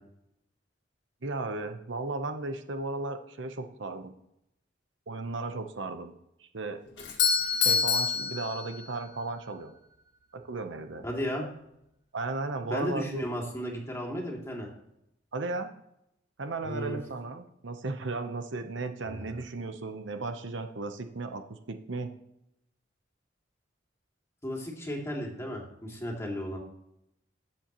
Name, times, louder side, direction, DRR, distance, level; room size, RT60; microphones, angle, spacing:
voice 1, 1.2-4.1 5.1-6.1 6.4-6.8 7.6-9.7 10.3-11.1 12.1-13.2 15.3-15.7 16.4-22.1, right 3 dB, 75° right, 7 dB, 0.9 m, -35 dB
Doorbell, 7.0-9.1, left 6 dB, 70° left, 1.9 m, -27 dB
voice 2, 11.0-11.5 12.7-14.7 16.6-17.0 19.0-19.3 24.4-26.6, equal, 15° left, -1 dB, 2.3 m, -34 dB
20.0 x 7.5 x 3.0 m, 0.82 s
head